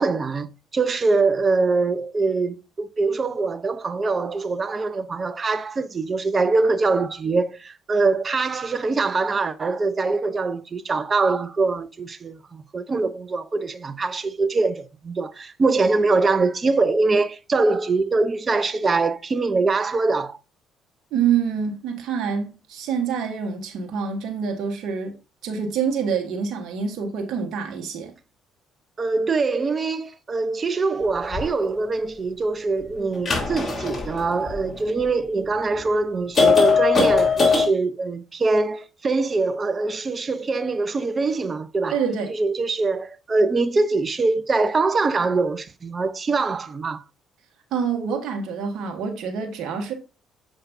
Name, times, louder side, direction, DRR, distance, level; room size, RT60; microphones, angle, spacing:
voice 1, 0.0-20.4 29.0-42.0 42.3-47.0, right 3 dB, 35° right, 0.7 m, -23 dB
voice 2, 21.1-25.1 25.4-28.1 41.9-42.3 47.7-49.9, right 6 dB, 65° right, 1.3 m, -26 dB
sound 1, 31.3-31.4 33.1-35.0 35.7-35.8 36.3-37.7, left 4 dB, 35° left, 2.9 m, -20 dB
7.2 x 5.1 x 2.6 m
hypercardioid pair, 55°, 0 cm